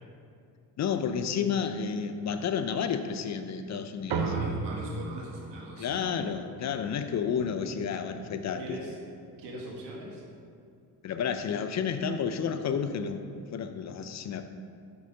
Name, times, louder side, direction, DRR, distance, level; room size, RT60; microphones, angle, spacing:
voice 1, 0.8-4.2 5.8-8.8 11.0-14.5, left 7 dB, 45° left, 8 dB, 0.4 m, -31 dB
sound 1, 4.1-8.8, right 4 dB, 65° right, 0.7 m, -36 dB
voice 2, 4.1-6.0 8.6-9.0 9.4-10.2, right 1 dB, 85° right, -2 dB, 1.3 m, -40 dB
5.5 x 3.9 x 5.2 m, 2.3 s
cardioid pair, 90°, 41 cm